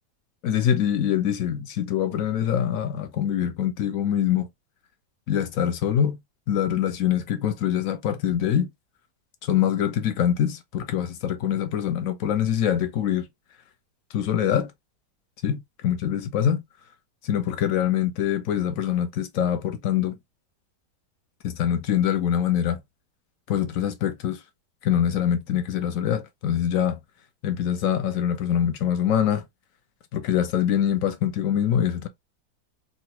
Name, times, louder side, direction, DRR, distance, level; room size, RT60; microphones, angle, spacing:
voice 1, 0.4-4.5 5.3-6.2 6.5-8.7 9.4-13.3 14.1-14.7 15.4-16.6 17.2-20.1 21.4-22.8 23.5-24.4 24.8-27.0 27.4-29.4 30.1-32.1, left 9 dB, 65° left, 0.8 m, -24 dB
3.8 x 2.1 x 2.8 m
omnidirectional pair, 1.8 m